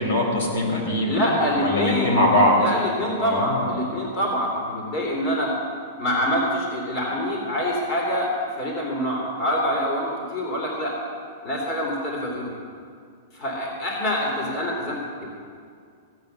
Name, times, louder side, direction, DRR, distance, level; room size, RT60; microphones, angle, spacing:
voice 1, 0.0-2.6 3.2-3.8, left 1 dB, 75° left, 1 dB, 4.2 m, -22 dB
voice 2, 1.1-5.5 6.0-11.0 11.4-12.5 13.3-15.3, equal, 30° left, -2 dB, 2.9 m, -25 dB
16.5 x 8.9 x 6.8 m, 2.2 s
supercardioid pair, 160°, 0 cm